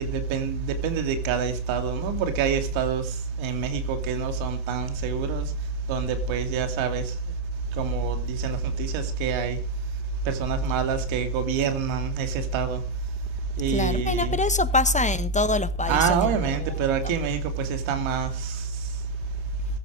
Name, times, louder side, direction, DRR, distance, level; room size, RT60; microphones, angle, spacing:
voice 1, 0.0-5.5 5.9-7.1 7.8-9.6 10.2-12.8 13.6-14.4 15.9-18.7, right 7 dB, 85° right, 2.8 m, -27 dB
voice 2, 13.7-16.3 16.6-16.7, left 2 dB, 15° left, 1.3 m, -24 dB
15.5 x 14.0 x 4.8 m
supercardioid pair, 65°, 46 cm